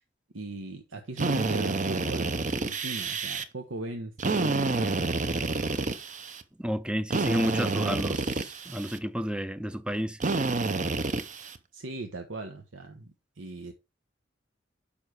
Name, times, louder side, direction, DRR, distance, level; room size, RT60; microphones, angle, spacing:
voice 1, 0.3-2.4 2.6-5.0 11.7-13.7, right 2 dB, 85° right, 1.1 m, -38 dB
Drill, 1.2-3.4 4.2-6.4 7.1-9.0 10.2-11.6, right 3 dB, 40° right, 0.7 m, -29 dB
voice 2, 6.6-10.2, equal, 5° right, 0.4 m, -31 dB
7.0 x 5.6 x 4.8 m
head